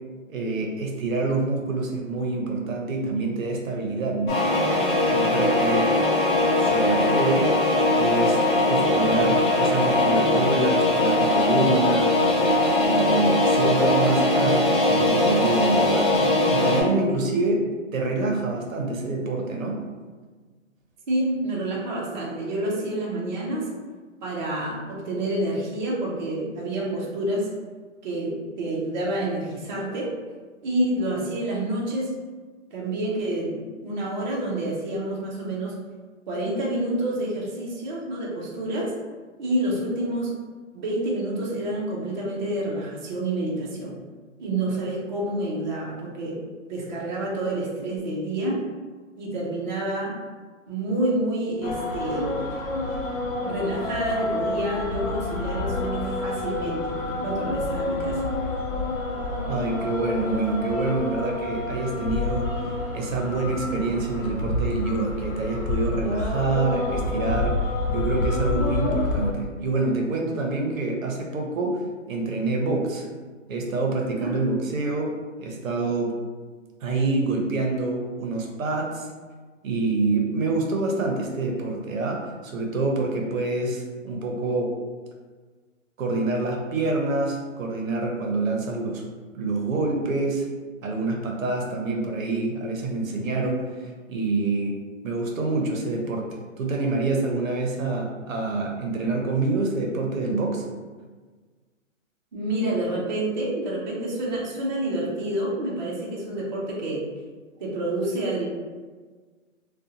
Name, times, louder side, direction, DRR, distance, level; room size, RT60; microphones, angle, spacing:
voice 1, 0.3-4.4 5.1-5.9 6.6-7.5 8.0-12.1 12.8-17.6 17.9-19.8 59.5-62.5 62.9-67.6 67.9-71.8 72.1-73.1 73.5-75.1 75.4-76.1 76.8-79.1 79.6-84.7 86.0-89.0 89.3-90.5 90.8-94.7 95.0-100.7, right 3 dB, 85° right, 0 dB, 0.8 m, -26 dB
sound 1, 4.3-16.8, left 2 dB, 40° left, 0.9 m, -21 dB
voice 2, 21.1-23.6 24.2-27.5 28.0-30.1 30.6-32.1 32.7-35.7 36.3-38.9 39.4-40.3 40.7-44.0 44.4-46.4 46.7-48.6 49.2-50.1 50.7-52.4 53.4-58.2 74.2-74.5 102.3-107.0 107.6-108.5, right 1 dB, 35° right, -4 dB, 0.6 m, -28 dB
sound 2, 51.6-69.3, left 2 dB, 85° left, 0.6 m, -28 dB
2.6 x 2.2 x 2.7 m, 1.4 s
hypercardioid pair, 155°, 39 cm